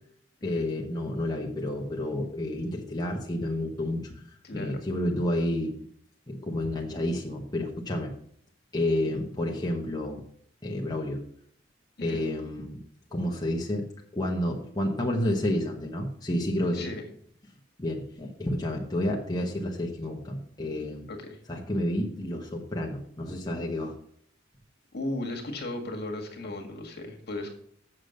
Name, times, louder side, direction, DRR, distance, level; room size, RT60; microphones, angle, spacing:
voice 1, 0.4-4.1 4.5-5.8 6.3-8.1 8.7-10.2 10.6-11.2 12.0-12.8 13.1-13.9 14.1-16.9 17.8-21.1 21.5-23.9, left 1 dB, 20° left, -1 dB, 1.1 m, -30 dB
voice 2, 4.4-4.8 12.0-12.2 16.7-17.0 21.1-21.4 24.9-27.5, left 2 dB, 60° left, 2 dB, 1.8 m, -36 dB
7.4 x 6.6 x 6.4 m, 0.64 s
head